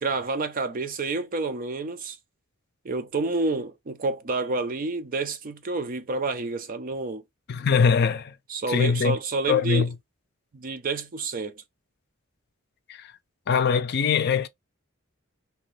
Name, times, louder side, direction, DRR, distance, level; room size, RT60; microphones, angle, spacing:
voice 1, 0.0-2.2 2.8-7.2 8.5-9.9 10.5-11.5, right 3 dB, 40° right, 0.5 m, -29 dB
voice 2, 7.5-8.4 8.7-9.2 9.5-9.9 12.9-13.1 13.5-14.5, left 6 dB, 50° left, 0.4 m, -22 dB
2.8 x 2.6 x 3.2 m
head